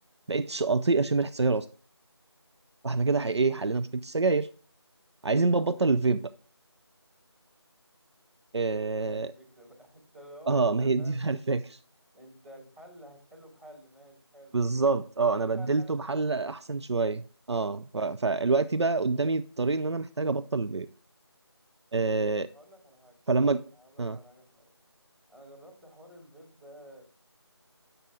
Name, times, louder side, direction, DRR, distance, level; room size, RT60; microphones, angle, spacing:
voice 1, 0.3-1.7 2.8-4.5 5.2-6.2 8.5-9.3 10.5-11.6 14.5-20.9 21.9-22.5 23.3-23.6 24.0-24.2, right 3 dB, 75° right, 13 dB, 0.5 m, -26 dB
voice 2, 8.8-11.5 12.1-14.6 15.3-16.6 22.5-23.2 23.7-24.7 25.3-27.0, equal, 20° right, -7 dB, 4.2 m, -52 dB
9.0 x 6.8 x 3.7 m, 0.39 s
figure-of-eight pair, 170°, 14 cm